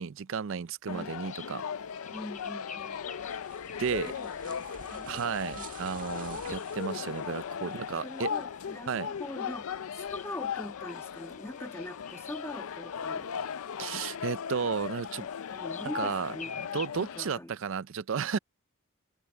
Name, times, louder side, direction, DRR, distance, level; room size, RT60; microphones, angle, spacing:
voice 1, 0.0-1.6 3.8-4.1 5.1-8.3 8.9-9.1 13.8-15.3 15.8-18.4, right 6 dB, 60° right, 0.5 m, -33 dB
sound 1, 0.9-17.4, left 7 dB, 80° left, 0.4 m, -38 dB
sound 2, 0.9-16.9, left 7 dB, 35° left, 4.4 m, -52 dB
voice 2, 2.1-3.0 4.2-5.2 5.5-5.7 7.6-7.7 8.0-8.9 9.2-13.3 15.5-16.6 17.0-17.5, left 1 dB, 10° left, 1.5 m, -43 dB
sound 3, 2.8-7.7, right 5 dB, 40° right, 1.9 m, -50 dB
head